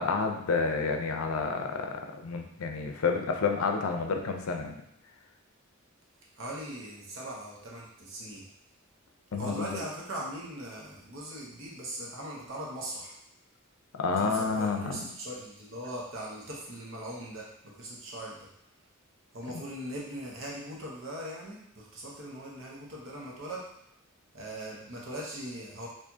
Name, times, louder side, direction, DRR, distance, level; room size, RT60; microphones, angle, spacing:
voice 1, 0.0-4.8 9.3-9.8 13.9-15.1, left 4 dB, 90° left, 4 dB, 0.5 m, -29 dB
voice 2, 6.4-8.4 9.4-13.1 14.1-18.5 19.3-23.7 24.3-25.9, right 1 dB, 65° right, -3 dB, 1.0 m, -40 dB
4.5 x 2.5 x 2.8 m, 0.75 s
head